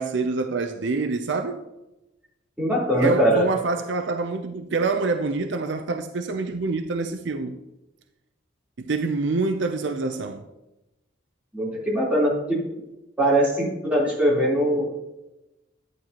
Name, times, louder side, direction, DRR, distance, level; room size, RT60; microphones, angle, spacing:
voice 1, 0.0-1.6 2.9-7.6 8.8-10.4, right 3 dB, 65° right, 0.5 m, -26 dB
voice 2, 2.6-3.5 11.5-12.6 13.2-15.0, right 1 dB, 5° right, 3.6 m, -21 dB
11.5 x 9.0 x 2.9 m
head